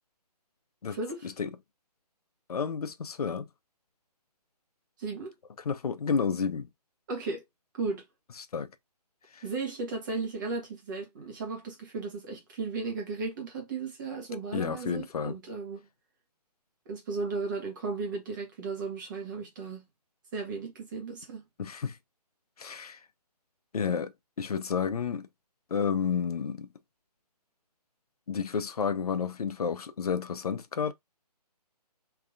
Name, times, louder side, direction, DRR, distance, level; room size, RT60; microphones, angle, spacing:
voice 1, 0.9-1.3 5.0-5.3 7.1-7.4 7.7-8.0 9.4-15.9 16.8-19.9 20.3-21.4, right 4 dB, 30° right, 1.5 m, -35 dB
voice 2, 2.5-3.5 5.6-6.7 8.4-8.7 9.3-9.4 14.5-15.4 21.6-22.0 22.6-23.0 23.7-24.1 24.4-25.3 25.7-26.7 28.3-30.9, left 6 dB, 65° left, 0.7 m, -31 dB
3.5 x 3.2 x 2.5 m
hypercardioid pair, 165°, 21 cm